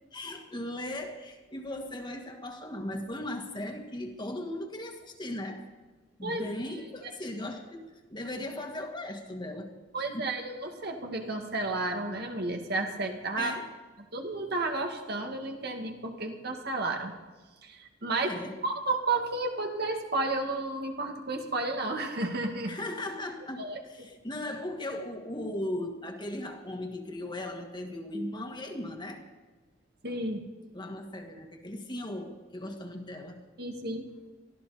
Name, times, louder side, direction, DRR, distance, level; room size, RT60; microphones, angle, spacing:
voice 1, 0.1-5.6 6.2-9.8 10.1-10.3 13.4-13.7 18.1-18.6 22.7-29.2 30.7-33.4, left 1 dB, 25° left, 3 dB, 1.9 m, -37 dB
voice 2, 9.9-13.5 14.1-17.1 17.6-18.3 18.6-22.8 23.6-23.8 30.0-30.5 33.6-34.1, right 2 dB, 60° right, 3 dB, 2.1 m, -32 dB
23.0 x 14.5 x 4.2 m, 1.3 s
head